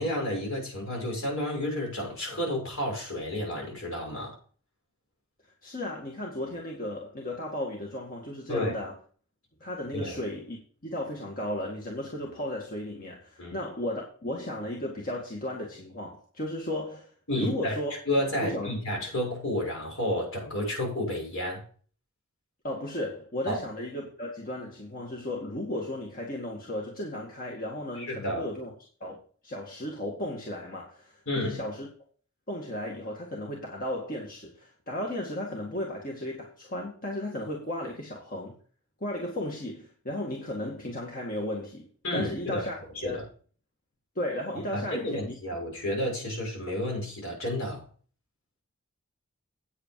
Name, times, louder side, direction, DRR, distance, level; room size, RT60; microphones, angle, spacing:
voice 1, 0.0-4.4 8.5-8.7 9.9-10.2 13.4-13.6 17.3-17.8 18.1-21.6 23.5-23.6 28.0-28.5 31.3-31.6 42.0-42.7 43.0-43.2 44.7-47.8, left 1 dB, 70° left, 6.4 m, -31 dB
voice 2, 5.6-9.0 9.6-10.6 10.8-17.9 18.4-18.7 22.6-28.7 29.0-31.9 32.5-38.6 39.0-41.9 42.1-43.2 44.2-45.3, left 1 dB, 40° left, 2.0 m, -35 dB
9.0 x 8.6 x 4.7 m
head